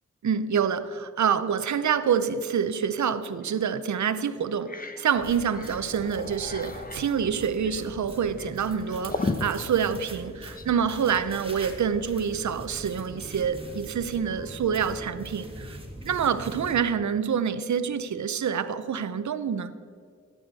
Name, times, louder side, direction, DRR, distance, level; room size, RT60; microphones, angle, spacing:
voice 1, 0.2-15.8 16.1-19.7, right 7 dB, 75° right, 0.7 m, -27 dB
sound 1, 3.4-3.6 4.0-4.1 4.4-10.8, left 3 dB, 30° left, 0.9 m, -37 dB
sound 2, 5.1-16.8, right 1 dB, 20° right, 1.9 m, -42 dB
14.0 x 8.5 x 4.1 m
cardioid pair, 50°, 29 cm